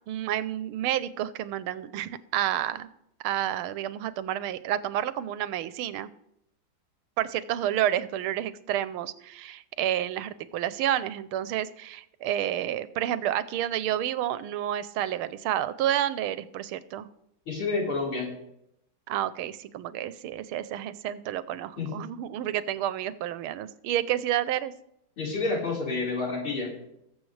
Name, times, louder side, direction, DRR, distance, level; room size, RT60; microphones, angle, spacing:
voice 1, 0.1-2.9 3.2-6.1 7.2-17.1 19.1-24.7, right 11 dB, 85° right, 14 dB, 1.6 m, -30 dB
voice 2, 17.5-18.3 21.8-21.9 25.2-26.7, left 3 dB, 90° left, -4 dB, 5.3 m, -29 dB
21.0 x 7.7 x 3.3 m, 0.78 s
omnidirectional pair, 2.3 m